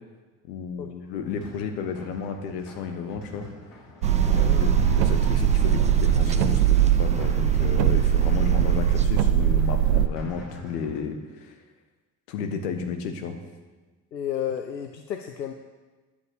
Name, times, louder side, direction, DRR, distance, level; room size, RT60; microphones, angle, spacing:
voice 1, 0.5-3.5 4.2-6.6 7.0-11.5 12.3-13.4, left 6 dB, 70° left, 6 dB, 1.4 m, -32 dB
sound 1, 1.1-11.0, left 2 dB, 50° left, 4.5 m, -46 dB
sound 2, 4.0-9.1, right 4 dB, 15° right, 0.8 m, -35 dB
sound 3, 4.0-10.1, right 10 dB, 85° right, 0.7 m, -21 dB
voice 2, 4.3-4.6 14.1-15.5, left 9 dB, 90° left, 6 dB, 0.5 m, -32 dB
10.5 x 8.4 x 6.5 m, 1.3 s
figure-of-eight pair, 50°, 49 cm